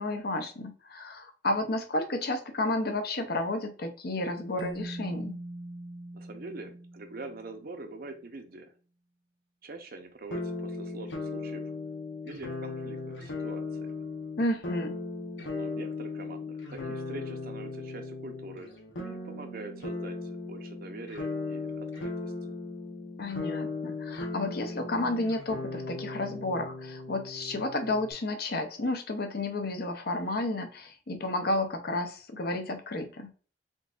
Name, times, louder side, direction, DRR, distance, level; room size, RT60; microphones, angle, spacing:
voice 1, 0.0-5.4 14.4-15.0 23.2-33.3, left 2 dB, 60° left, 6 dB, 0.7 m, -31 dB
Keyboard (musical), 4.6-7.8, right 1 dB, 25° right, 0.3 m, -41 dB
voice 2, 6.1-8.7 9.6-11.7 12.2-13.9 15.4-22.1 22.4-22.5, right 2 dB, 55° right, 6 dB, 0.7 m, -44 dB
sound 1, 10.3-28.1, left 3 dB, 85° left, 0.9 m, -37 dB
3.8 x 3.7 x 2.4 m, 0.39 s
head